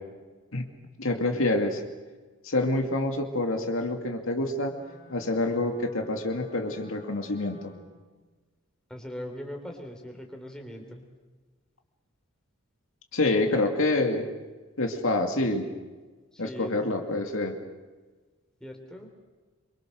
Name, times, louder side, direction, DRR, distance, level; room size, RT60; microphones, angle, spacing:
voice 1, 1.0-1.8 2.4-4.8 5.1-7.7 13.1-14.3 14.8-15.7 16.4-17.5, left 2 dB, 70° left, 4 dB, 2.5 m, -27 dB
Wind instrument woodwind instrument, 4.7-8.1, left 1 dB, 30° left, 5.6 m, -54 dB
voice 2, 8.9-11.1 16.3-17.0 18.6-19.1, equal, 5° left, 2 dB, 3.2 m, -40 dB
26.0 x 24.0 x 6.6 m, 1.3 s
head